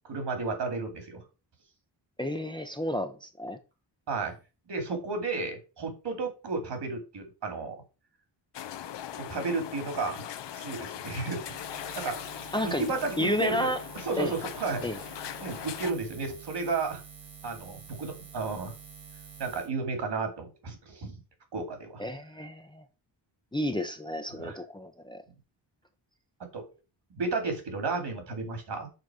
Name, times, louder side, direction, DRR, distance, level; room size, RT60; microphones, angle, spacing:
voice 1, 0.0-1.2 4.1-4.3 4.7-7.8 9.2-10.3 10.5-11.4 11.9-12.2 12.6-13.7 14.0-14.9 15.4-17.0 17.4-18.7 19.4-21.1 21.5-22.0 24.3-24.6 26.4-26.7 27.2-28.9, right 4 dB, 65° right, 2.5 m, -33 dB
voice 2, 2.2-3.6 12.5-12.9 13.2-13.8 14.2-14.3 14.8-15.0 22.0-22.8 23.5-25.2, left 1 dB, 10° left, 0.6 m, -31 dB
sound 1, 8.5-15.9, left 10 dB, 65° left, 0.7 m, -40 dB
Buzz, 11.4-19.7, right 6 dB, 50° right, 1.8 m, -48 dB
6.8 x 4.1 x 6.0 m
wide cardioid pair, 150°, 45 cm